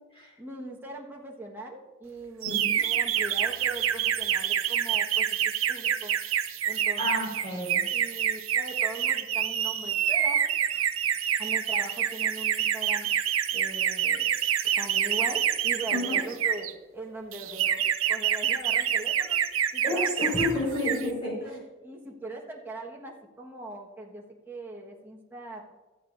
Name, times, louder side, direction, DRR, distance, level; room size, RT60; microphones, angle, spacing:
voice 1, 0.4-6.1 6.6-7.1 7.9-10.4 11.4-13.1 13.5-14.3 14.8-19.4 19.7-20.1 20.4-20.6 21.0-25.6, right 2 dB, 10° right, -2 dB, 1.4 m, -41 dB
voice 2, 2.4-2.8 7.0-7.8 15.9-16.2 19.8-21.5, left 1 dB, 25° left, -3 dB, 4.6 m, -30 dB
sound 1, 2.4-16.7 17.3-20.5 20.8-21.1, right 9 dB, 75° right, 0.6 m, -27 dB
15.5 x 12.5 x 2.6 m, 1.2 s
head